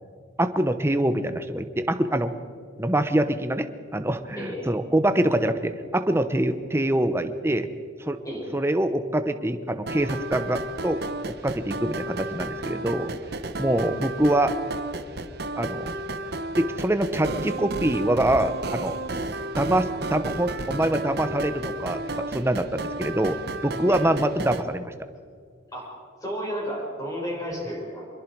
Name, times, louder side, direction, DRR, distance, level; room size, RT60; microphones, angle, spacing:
voice 1, 0.4-2.3 2.8-7.7 8.0-8.2 8.5-11.0 11.4-13.1 13.6-14.5 15.6-15.9 16.6-19.0 19.6-23.4 23.6-24.9, right 1 dB, 15° right, 10 dB, 1.0 m, -24 dB
voice 2, 4.4-4.8 8.2-8.5 13.7-13.8 23.9-24.0 25.7-25.9 26.2-28.0, equal, 20° left, -4 dB, 6.4 m, -32 dB
sound 1, 9.9-24.6, right 2 dB, 55° right, 1.1 m, -32 dB
26.0 x 22.0 x 4.7 m, 2.2 s
head